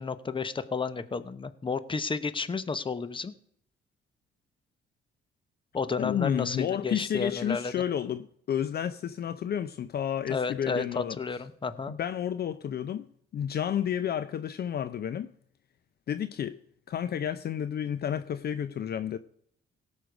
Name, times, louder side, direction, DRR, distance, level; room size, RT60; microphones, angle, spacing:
voice 1, 0.0-3.3 5.7-7.7 10.3-11.9, left 4 dB, 25° left, 0.9 m, -32 dB
voice 2, 6.0-11.2 11.9-13.1 13.3-15.3 16.1-16.6 16.9-19.2, left 9 dB, 55° left, 0.6 m, -31 dB
17.5 x 6.4 x 5.2 m
cardioid pair, 90°, 20 cm